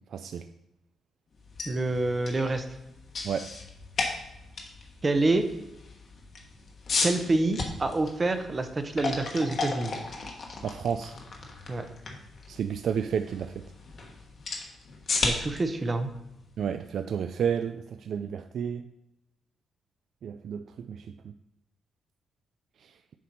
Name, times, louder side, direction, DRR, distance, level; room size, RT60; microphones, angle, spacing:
voice 1, 0.1-0.4 3.2-3.5 10.6-11.1 12.5-13.6 16.6-18.9 20.2-21.3 22.8-22.9, right 7 dB, 65° right, 9 dB, 0.3 m, -31 dB
sound 1, 1.4-17.3, left 3 dB, 50° left, 1.2 m, -36 dB
voice 2, 1.7-2.6 5.0-5.4 7.0-10.0 11.7-11.8 15.2-16.1, right 2 dB, 25° right, 8 dB, 0.7 m, -27 dB
7.4 x 4.3 x 5.3 m, 0.90 s
cardioid pair, 130°, 0 cm